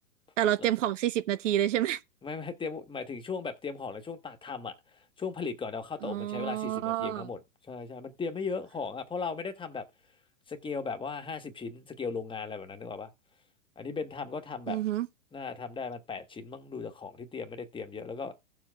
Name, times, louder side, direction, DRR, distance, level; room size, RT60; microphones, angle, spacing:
voice 1, 0.4-2.0 6.0-7.3 14.7-15.1, right 12 dB, 55° right, 1.0 m, -28 dB
voice 2, 2.2-7.4 7.7-9.9 10.5-13.1 13.8-14.8 15.3-18.4, left 5 dB, 10° left, 1.2 m, -37 dB
16.5 x 7.3 x 2.3 m
hypercardioid pair, 120°, 43 cm